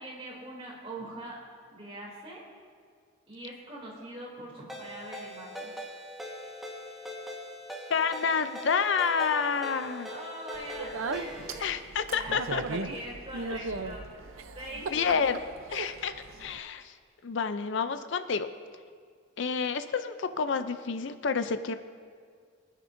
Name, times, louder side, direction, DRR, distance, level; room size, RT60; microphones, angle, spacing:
voice 1, 0.0-1.4 1.7-2.4 3.3-5.7 10.0-11.8 12.1-15.2, right 1 dB, 30° right, -4 dB, 3.0 m, -43 dB
Ringtone, 4.7-11.6, equal, ahead, 1.3 m, -42 dB
voice 2, 7.9-10.1 11.6-12.6 14.9-15.4 15.7-16.1 16.4-16.9 17.2-18.5 19.4-21.8, left 6 dB, 60° left, 10 dB, 0.5 m, -29 dB
Speech, 10.5-16.6, right 3 dB, 80° right, 0.6 m, -37 dB
23.5 x 10.0 x 2.6 m, 2.1 s
head